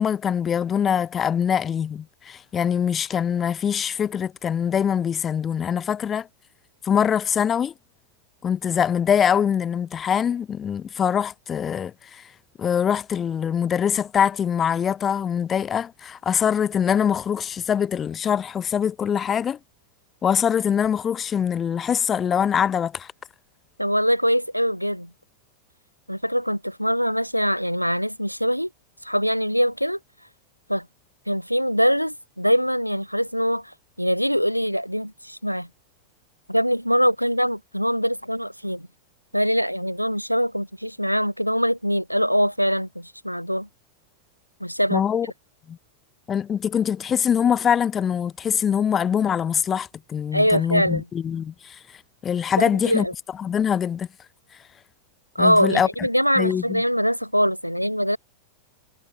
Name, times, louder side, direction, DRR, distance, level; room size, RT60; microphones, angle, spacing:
voice 1, 0.0-6.3 6.8-7.7 8.4-12.2 12.6-19.6 20.2-23.1 44.9-45.3 45.7-45.8 46.3-51.8 52.2-53.1 53.4-54.1 55.4-56.1 56.4-56.8, left 8 dB, 25° left, 5.4 m, -23 dB
voice 2, 23.8-25.1 26.1-28.7 29.0-30.0 30.7-30.9 31.3-33.7 34.0-35.7 36.5-38.9 39.3-43.7 44.6-45.0 50.3-51.1 52.6-53.1 55.4-58.2, equal, 90° left, 2.1 m, -23 dB
figure-of-eight pair, 90°, 0 cm